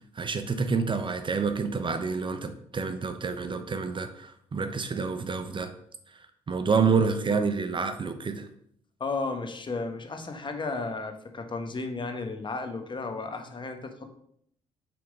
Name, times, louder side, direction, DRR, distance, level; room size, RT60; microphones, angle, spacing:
voice 1, 0.2-5.7 6.5-8.5, right 5 dB, 35° right, 9 dB, 0.7 m, -28 dB
voice 2, 9.0-14.1, left 3 dB, 35° left, 5 dB, 1.1 m, -34 dB
6.1 x 3.6 x 4.9 m, 0.68 s
hypercardioid pair, 55°, 14 cm